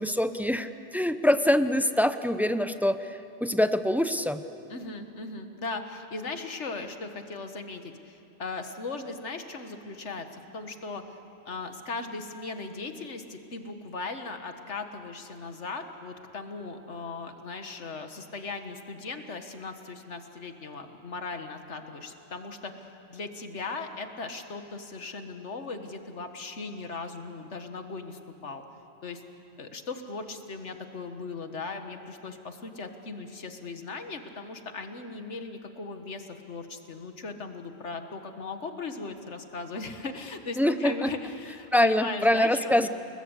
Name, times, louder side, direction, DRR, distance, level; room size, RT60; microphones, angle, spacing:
voice 1, 0.0-4.4 40.6-41.1 41.7-42.9, left 1 dB, ahead, 10 dB, 0.5 m, -24 dB
voice 2, 4.7-11.2 11.5-28.6 29.0-29.2 29.6-42.9, left 3 dB, 70° left, 7 dB, 1.9 m, -38 dB
29.5 x 20.5 x 8.2 m, 2.7 s
omnidirectional pair, 1.2 m